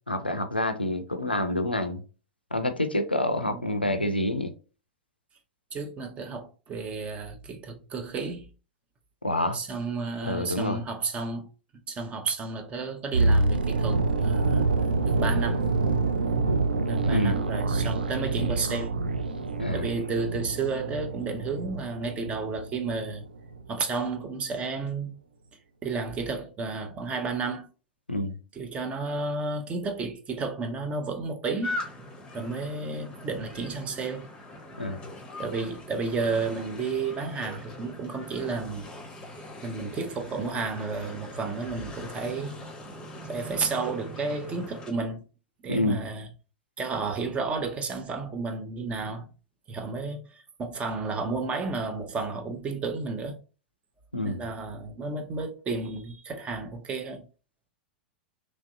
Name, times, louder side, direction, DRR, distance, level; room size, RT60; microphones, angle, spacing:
voice 1, 0.1-2.0 2.5-4.5 9.2-9.6 10.2-10.8 17.0-17.4 19.6-19.9 28.1-28.3 34.8-35.0 45.7-46.0 54.1-54.4, left 1 dB, 90° left, 0.4 m, -27 dB
voice 2, 5.7-8.5 9.5-11.5 11.9-14.7 15.0-15.7 16.9-19.0 19.7-23.3 23.7-25.1 25.8-27.7 28.5-31.8 32.3-34.3 35.4-38.9 39.6-42.6 43.3-45.2 45.6-46.3 46.8-49.3 49.7-53.4 54.2-57.2, right 4 dB, 25° right, 0.6 m, -32 dB
sound 1, 13.1-23.1 23.4-23.6, right 3 dB, 75° right, 0.3 m, -26 dB
sound 2, 31.6-44.9, left 1 dB, 15° left, 0.7 m, -41 dB
3.0 x 2.6 x 2.6 m
figure-of-eight pair, 95°, 5 cm